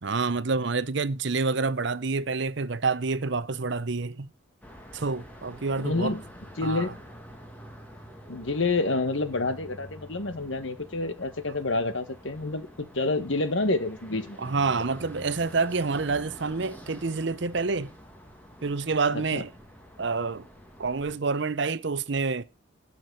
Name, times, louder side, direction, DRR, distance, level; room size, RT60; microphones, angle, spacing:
voice 1, 0.0-4.3 4.9-6.2 6.6-6.9 11.5-11.6 14.4-17.9 18.6-19.5 20.0-20.5 20.8-22.4, right 4 dB, 55° right, 0.7 m, -28 dB
sound 1, 4.6-21.2, equal, 10° left, 2.0 m, -47 dB
voice 2, 5.8-6.2 6.6-6.9 8.3-14.4 19.1-19.4, left 2 dB, 65° left, 1.4 m, -28 dB
12.5 x 6.1 x 6.5 m
head